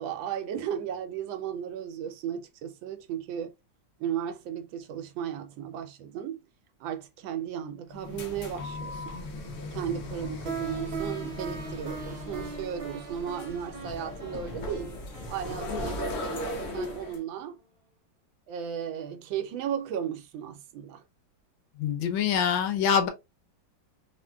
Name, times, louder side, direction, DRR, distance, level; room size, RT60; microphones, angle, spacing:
voice 1, 0.0-3.5 4.0-6.4 6.8-9.2 9.7-15.0 15.3-17.6 18.5-21.0, right 9 dB, 80° right, 1.3 m, -35 dB
sound 1, 7.9-17.2, left 2 dB, 70° left, 0.7 m, -38 dB
sound 2, 10.5-17.2, right 5 dB, 45° right, 0.9 m, -41 dB
voice 2, 21.8-23.1, left 7 dB, 85° left, 1.4 m, -25 dB
3.6 x 2.2 x 2.2 m
omnidirectional pair, 2.1 m